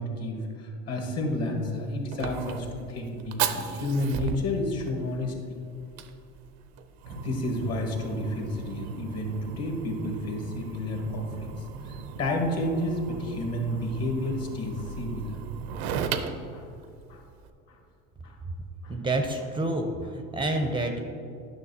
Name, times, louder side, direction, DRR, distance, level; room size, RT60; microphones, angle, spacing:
voice 1, 0.0-5.3 7.1-15.4 16.0-16.1 16.5-16.7 17.1-17.2 17.7-17.8 18.2-18.4 18.8-18.9, left 1 dB, 50° left, 2 dB, 1.5 m, -31 dB
Fire, 1.3-17.5, right 7 dB, 85° right, 0.6 m, -37 dB
voice 2, 18.9-21.0, right 2 dB, 15° right, 4 dB, 0.5 m, -28 dB
9.9 x 6.1 x 2.7 m, 2.6 s
supercardioid pair, 110°, 32 cm